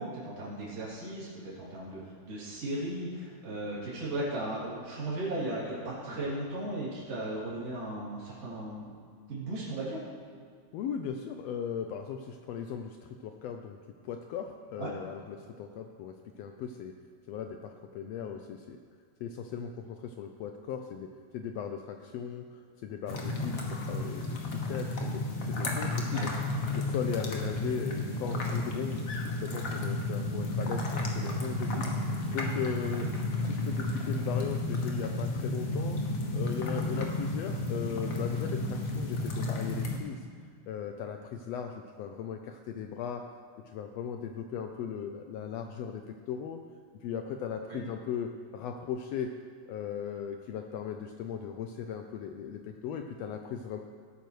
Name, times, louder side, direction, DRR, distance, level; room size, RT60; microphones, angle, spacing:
voice 1, 0.0-8.9 9.3-10.0 14.8-14.9 26.1-26.4 47.7-47.8, right 1 dB, 55° right, -7 dB, 3.9 m, -36 dB
voice 2, 10.7-13.8 14.0-16.9 17.3-18.8 19.2-26.3 26.7-29.0 29.2-33.1 33.4-40.2 40.7-43.2 43.7-46.6 47.0-49.3 49.7-53.8, left 7 dB, 80° left, 5 dB, 1.5 m, -38 dB
sound 1, 23.1-40.0, left 2 dB, 55° left, 0.9 m, -32 dB
17.5 x 9.0 x 3.1 m, 2.1 s
omnidirectional pair, 3.3 m